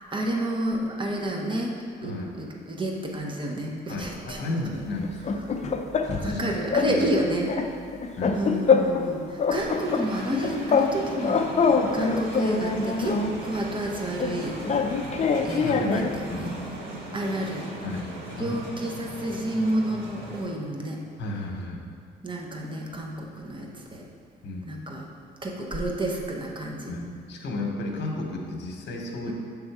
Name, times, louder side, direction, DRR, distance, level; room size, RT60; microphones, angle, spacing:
voice 1, 0.1-4.8 6.2-7.5 8.3-11.5 11.9-14.6 15.4-16.5 17.1-17.7 18.4-21.0 22.2-24.0 24.6-25.0 25.4-27.0, right 1 dB, 25° right, -1 dB, 0.9 m, -30 dB
voice 2, 2.0-2.3 3.9-5.4 6.0-6.5 6.9-7.1 8.2-8.4 15.6-16.6 17.8-18.1 18.3-18.6 21.2-21.9 24.4-24.7 26.9-29.3, left 2 dB, 60° left, 1 dB, 1.1 m, -33 dB
sound 1, 5.0-6.4 6.7-6.9 7.2-9.1 9.4-10.9 11.2-13.4 14.2-16.2, left 5 dB, 35° left, 0.4 m, -24 dB
sound 2, 9.5-20.4, right 1 dB, 85° right, 1.5 m, -38 dB
6.5 x 3.5 x 4.7 m, 2.3 s
cardioid pair, 90°, 20 cm